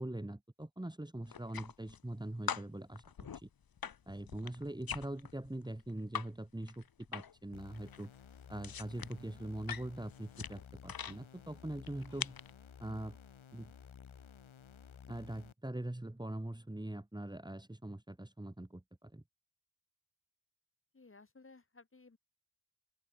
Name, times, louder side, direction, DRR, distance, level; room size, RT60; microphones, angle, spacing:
voice 1, 0.0-3.0 3.3-3.5 4.1-8.1 8.5-12.3 12.8-13.2 13.5-13.7 15.1-19.2, right 1 dB, 10° right, 2.0 m, -43 dB
sound 1, 1.3-2.2 2.5-6.3 6.6-7.5 7.7-11.2 11.8-12.5, left 7 dB, 45° left, 1.2 m, -43 dB
sound 2, 7.5-15.5, left 7 dB, 70° left, 4.3 m, -55 dB
voice 2, 20.9-22.2, left 3 dB, 25° left, 2.1 m, -58 dB
open air
wide cardioid pair, 135°, 50 cm